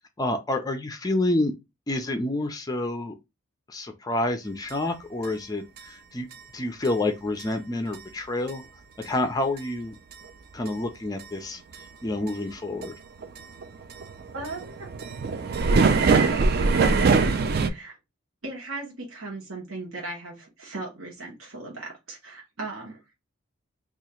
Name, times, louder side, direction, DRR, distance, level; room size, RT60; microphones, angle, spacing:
voice 1, 0.2-1.5 1.9-3.2 3.7-6.3 6.5-8.6 9.0-10.0 10.5-12.9, left 2 dB, 20° left, 0.4 m, -28 dB
sound 1, 4.7-4.8 5.2-5.3 5.8-5.9 6.3-6.4 6.8-6.9 7.4-7.5 7.9-8.0 8.5-8.6 9.0-9.1 9.6-9.7 10.1-10.2 10.7-10.8 11.2-11.3 11.7-11.8 12.3-12.5 12.8-12.9 13.2-17.7, right 4 dB, 50° right, 0.4 m, -22 dB
voice 2, 14.3-14.9 16.1-17.1 17.6-17.9 18.4-23.0, right 2 dB, 75° right, 1.0 m, -37 dB
2.8 x 2.4 x 4.2 m
head